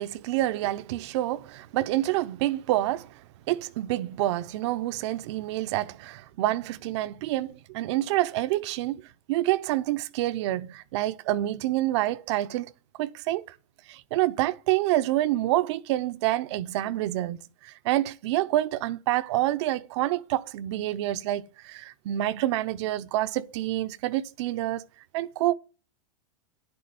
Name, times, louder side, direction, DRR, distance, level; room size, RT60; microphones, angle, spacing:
voice 1, 0.0-3.2 3.5-9.0 9.3-12.7 13.0-13.5 13.9-24.8 25.1-25.5, right 15 dB, 55° right, 0.7 m, -27 dB
10.0 x 7.0 x 9.2 m
supercardioid pair, 155°, 18 cm